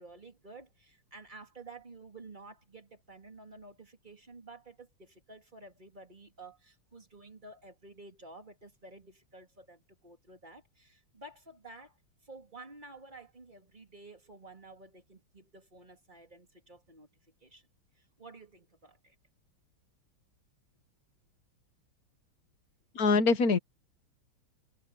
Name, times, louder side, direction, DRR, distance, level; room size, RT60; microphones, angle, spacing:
voice 1, 0.0-12.0 12.2-17.1 17.4-17.7 17.9-19.1, right 2 dB, 20° right, 3.1 m, -52 dB
voice 2, 22.9-23.6, left 4 dB, 45° left, 1.6 m, -24 dB
omnidirectional pair, 2.4 m